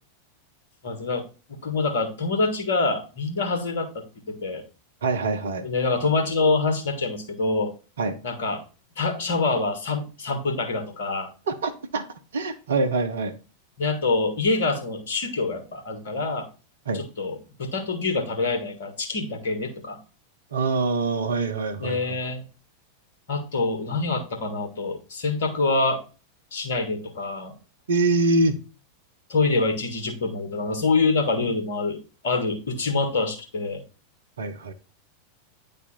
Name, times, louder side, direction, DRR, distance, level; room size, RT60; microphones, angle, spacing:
voice 1, 0.8-4.6 5.6-7.7 8.2-8.6 9.0-11.3 13.8-16.5 16.9-20.0 21.8-22.4 23.3-26.0 26.5-27.5 29.3-33.8, left 3 dB, 60° left, 5 dB, 1.6 m, -26 dB
voice 2, 5.0-5.7 8.0-8.1 11.5-12.0 12.3-13.3 16.9-17.0 20.5-22.2 27.9-28.6 34.4-34.7, right 3 dB, 65° right, 8 dB, 0.9 m, -24 dB
9.7 x 3.3 x 4.2 m, 0.33 s
figure-of-eight pair, 90°, 0 cm